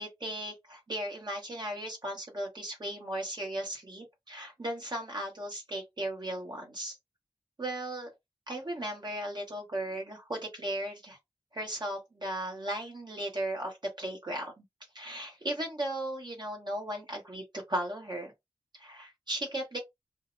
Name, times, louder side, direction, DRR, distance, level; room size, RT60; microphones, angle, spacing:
voice 1, 0.0-7.0 7.6-8.1 8.5-11.2 11.5-14.6 14.9-18.3 18.7-19.8, right 1 dB, 45° right, 0.9 m, -36 dB
2.7 x 2.0 x 2.5 m
wide cardioid pair, 70°, 10 cm